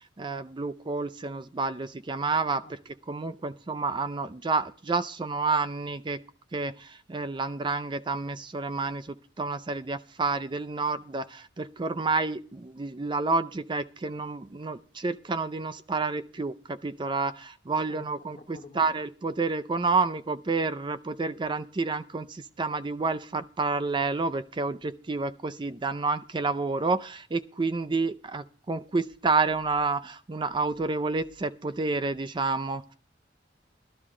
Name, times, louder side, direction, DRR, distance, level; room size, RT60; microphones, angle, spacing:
voice 1, 0.2-2.8 3.1-6.2 6.5-9.0 9.4-32.8, right 3 dB, 25° right, 0.4 m, -29 dB
voice 2, 17.9-18.9, left 2 dB, 45° left, 0.9 m, -49 dB
13.0 x 12.5 x 3.7 m
head